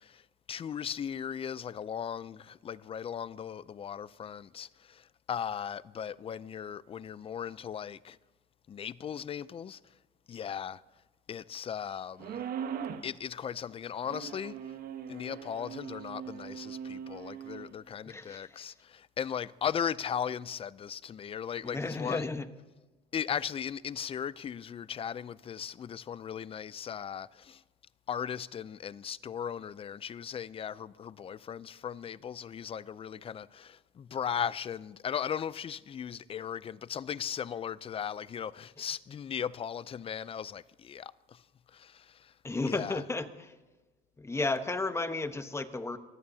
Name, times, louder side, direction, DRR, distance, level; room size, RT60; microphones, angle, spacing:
voice 1, 0.0-8.2 8.7-9.8 10.3-10.8 11.3-12.4 13.0-14.6 15.1-22.2 23.1-27.6 28.1-41.4 41.7-42.3 42.7-43.0, left 8 dB, 35° left, 0.5 m, -37 dB
sound 1, 12.2-13.1 14.0-17.7, right 8 dB, 60° right, 1.2 m, -40 dB
voice 2, 18.1-18.6 21.6-22.4 42.4-43.5 44.2-46.0, left 3 dB, 15° left, 1.1 m, -33 dB
23.5 x 15.5 x 2.8 m
cardioid pair, 110°, 17 cm